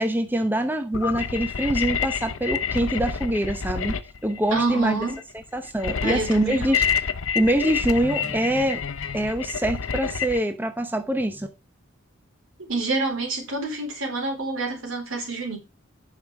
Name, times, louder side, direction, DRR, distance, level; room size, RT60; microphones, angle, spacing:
voice 1, 0.0-5.0 5.5-6.8 7.3-8.8 9.1-11.5, right 1 dB, 10° right, 0.8 m, -24 dB
sound 1, 0.9-10.4, left 7 dB, 75° left, 0.6 m, -28 dB
voice 2, 4.5-5.2 6.0-6.8 12.6-15.6, right 3 dB, 85° right, 4.2 m, -28 dB
8.5 x 5.7 x 4.8 m
head